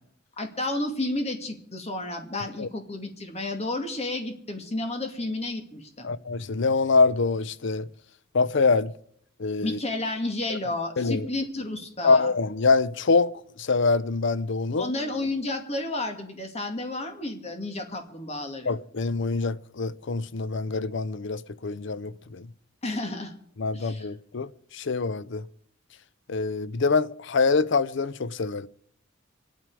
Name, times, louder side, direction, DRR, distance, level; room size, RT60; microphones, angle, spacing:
voice 1, 0.4-6.1 9.6-12.3 14.8-18.8 22.8-23.3 23.7-24.1, left 2 dB, 35° left, 2.1 m, -31 dB
voice 2, 6.0-7.9 8.3-8.9 9.4-9.8 11.0-11.3 12.0-13.3 13.6-14.9 18.7-22.5 23.6-25.4 26.3-28.7, left 4 dB, 65° left, 0.6 m, -25 dB
26.0 x 9.2 x 4.8 m
head